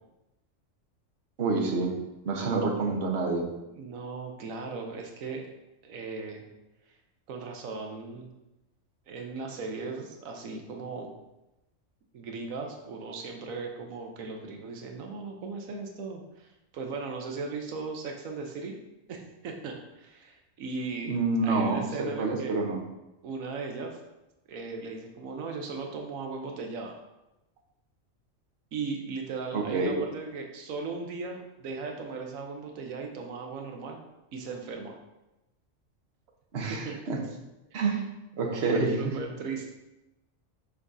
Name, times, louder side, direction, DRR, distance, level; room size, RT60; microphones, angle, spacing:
voice 1, 1.4-1.9 2.2-3.5 21.1-22.8 29.5-30.0 36.5-37.2 37.7-38.0 38.3-39.1, right 3 dB, 55° right, 0 dB, 1.2 m, -27 dB
voice 2, 3.7-5.5 5.8-6.5 7.3-8.3 9.1-11.1 12.1-18.8 19.1-21.2 21.4-22.5 23.2-24.0 24.5-26.9 28.7-34.0 34.3-35.0 36.7-37.0 38.7-39.7, right 4 dB, 90° right, 2 dB, 1.2 m, -37 dB
6.1 x 5.9 x 2.6 m, 0.97 s
omnidirectional pair, 1.4 m